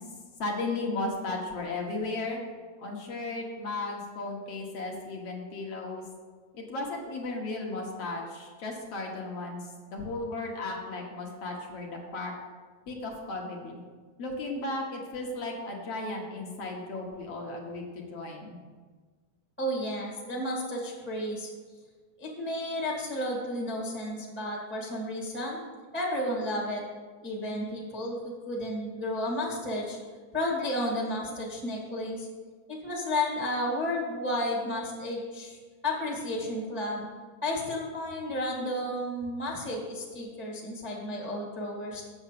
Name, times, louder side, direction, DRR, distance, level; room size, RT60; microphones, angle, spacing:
voice 1, 0.4-2.4 2.8-6.0 6.5-9.6 9.9-12.3 12.9-13.8 14.2-18.6, left 2 dB, 55° left, 0 dB, 2.2 m, -35 dB
voice 2, 19.6-21.5 22.2-25.6 25.9-26.8 27.2-30.0 30.3-32.3 32.7-35.6 35.8-37.0 37.4-42.0, left 1 dB, 5° left, -3 dB, 1.3 m, -32 dB
8.7 x 7.1 x 6.8 m, 1.5 s
omnidirectional pair, 3.7 m